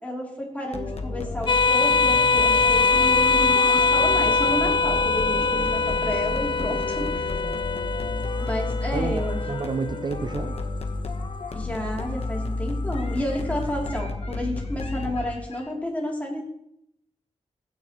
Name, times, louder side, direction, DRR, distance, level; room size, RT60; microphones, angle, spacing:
voice 1, 0.0-7.3 8.4-9.4 11.5-16.4, equal, 10° left, -2 dB, 3.0 m, -31 dB
sound 1, 0.7-15.7, left 2 dB, 60° left, 1.2 m, -31 dB
sound 2, 1.5-10.4, left 4 dB, 45° left, 0.5 m, -23 dB
sound 3, 1.7-10.7, left 2 dB, 85° left, 1.8 m, -42 dB
voice 2, 8.9-10.6, right 4 dB, 40° right, 10 dB, 0.4 m, -30 dB
15.5 x 9.2 x 3.1 m, 0.76 s
wide cardioid pair, 100°, 12 cm